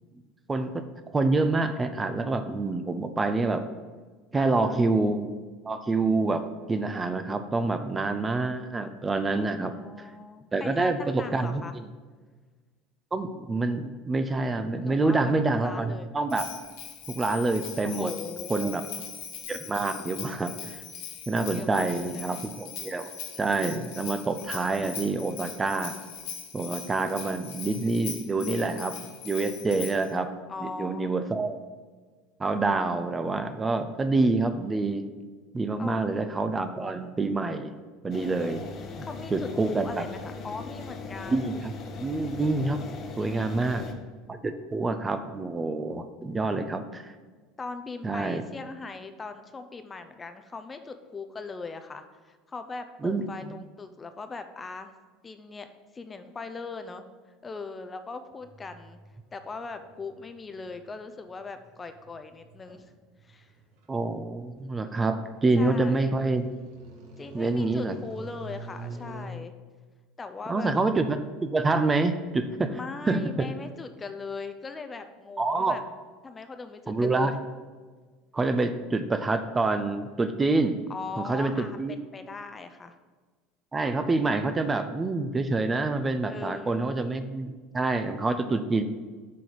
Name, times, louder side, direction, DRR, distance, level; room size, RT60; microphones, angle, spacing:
voice 1, 1.1-3.7 4.3-5.3 5.6-10.1 10.5-11.8 13.1-16.5 17.1-18.1 18.5-18.8 19.5-20.8 21.3-23.1 23.4-25.9 26.5-30.3 30.6-31.6 32.4-35.0 35.5-37.7 38.0-38.6 39.3-40.1 41.3-41.7 42.0-42.8 43.2-43.9 44.3-47.1 48.0-48.4 53.0-53.5 63.9-66.5 67.3-67.9 70.5-72.8 73.1-73.5 75.4-75.8 76.9-77.3 78.3-80.8 81.2-82.0 83.7-88.8, right 3 dB, 20° right, 9 dB, 0.7 m, -27 dB
voice 2, 4.3-4.8 9.3-11.7 14.8-16.1 17.8-18.7 21.5-22.5 30.5-31.1 35.8-36.2 39.0-41.4 43.2-44.0 47.6-54.9 55.2-55.7 55.9-57.0 57.4-59.0 59.3-62.9 63.2-63.5 65.6-66.2 67.2-69.5 70.2-70.7 72.7-75.8 76.2-77.4 80.9-82.9 86.3-86.9, left 4 dB, 25° left, 8 dB, 0.7 m, -40 dB
Bell, 16.3-30.1, left 9 dB, 65° left, 1.3 m, -41 dB
sound 1, 38.1-43.9, left 4 dB, 45° left, 1.1 m, -39 dB
sound 2, 58.4-69.3, right 2 dB, 70° right, 1.8 m, -46 dB
7.6 x 3.9 x 6.8 m, 1.4 s
hypercardioid pair, 85°, 0 cm